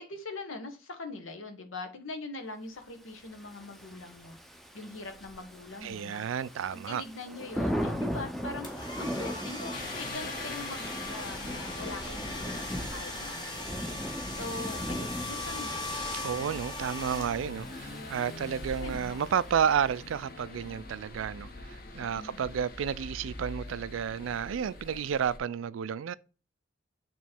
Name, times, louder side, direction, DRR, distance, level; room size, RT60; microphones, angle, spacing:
voice 1, 0.0-4.4 4.7-6.3 6.7-15.9 18.6-19.3 22.0-22.4, left 3 dB, 85° left, 1.2 m, -42 dB
Thunder / Rain, 3.2-19.8, equal, ahead, 0.5 m, -39 dB
voice 2, 5.8-7.0 16.2-26.1, right 8 dB, 80° right, 0.3 m, -31 dB
sound 1, 8.6-17.8, left 2 dB, 20° left, 1.2 m, -39 dB
sound 2, 9.7-25.4, left 2 dB, 45° left, 1.0 m, -44 dB
7.2 x 3.1 x 4.3 m
head